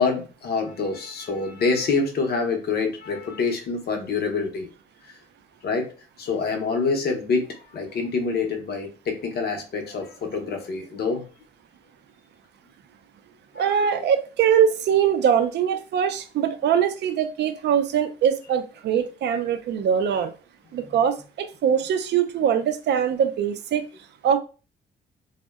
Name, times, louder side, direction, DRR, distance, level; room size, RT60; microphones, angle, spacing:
voice 1, 0.0-4.7 5.1-5.2 5.6-5.9 6.2-7.5 7.7-11.2 13.5-13.9, left 4 dB, 55° left, 0.7 m, -26 dB
voice 2, 13.6-20.3 20.7-23.9 24.2-24.4, right 8 dB, 60° right, 0.4 m, -22 dB
2.7 x 2.0 x 2.2 m
cardioid pair, 90°, 20 cm